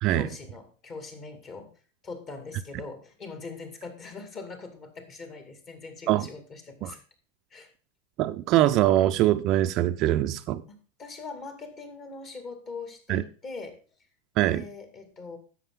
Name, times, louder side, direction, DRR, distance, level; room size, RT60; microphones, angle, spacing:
voice 1, 0.1-1.8 2.0-7.0 7.5-7.7 10.7-13.8 14.4-15.4, left 4 dB, 30° left, 7 dB, 2.3 m, -41 dB
voice 2, 8.2-10.6 13.1-13.2 14.4-14.6, right 14 dB, 40° right, 9 dB, 0.5 m, -23 dB
10.5 x 7.6 x 3.8 m, 0.38 s
supercardioid pair, 140°, 0 cm